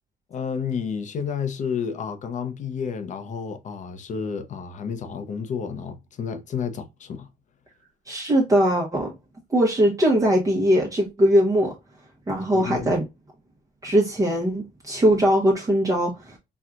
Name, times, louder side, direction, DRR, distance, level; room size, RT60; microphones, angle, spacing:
voice 1, 0.3-7.3 12.5-13.0, left 6 dB, 45° left, 0.7 m, -31 dB
voice 2, 8.1-9.1 9.5-11.7 12.3-13.0 13.8-16.4, equal, 20° right, 0.9 m, -20 dB
4.4 x 2.3 x 2.4 m
cardioid pair, 110°, 17 cm